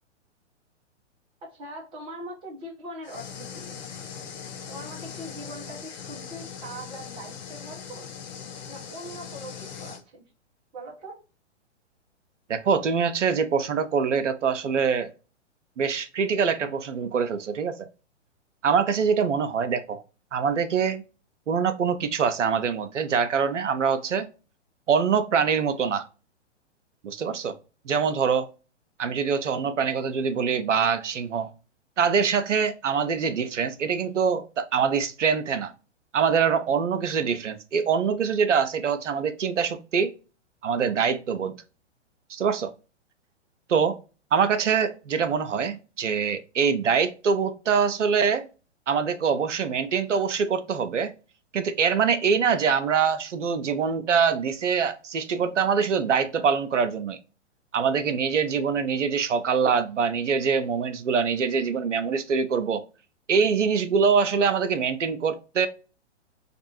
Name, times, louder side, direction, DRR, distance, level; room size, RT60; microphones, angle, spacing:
voice 1, 1.4-3.8 4.7-8.1 8.7-10.2 10.7-11.2, right 1 dB, 15° right, 0.7 m, -41 dB
sound 1, 3.0-10.0, left 7 dB, 40° left, 0.5 m, -40 dB
voice 2, 12.5-15.1 15.8-17.9 18.6-20.0 20.3-21.0 21.5-24.3 24.9-26.0 27.0-27.6 27.9-28.5 29.0-31.5 32.0-35.7 36.1-40.1 40.6-41.6 42.3-42.7 43.7-44.0 44.3-48.5 48.9-51.1 51.5-57.2 57.7-62.8 63.3-65.7, right 6 dB, 80° right, 0.5 m, -24 dB
2.5 x 2.3 x 2.8 m
figure-of-eight pair, 115°, 36 cm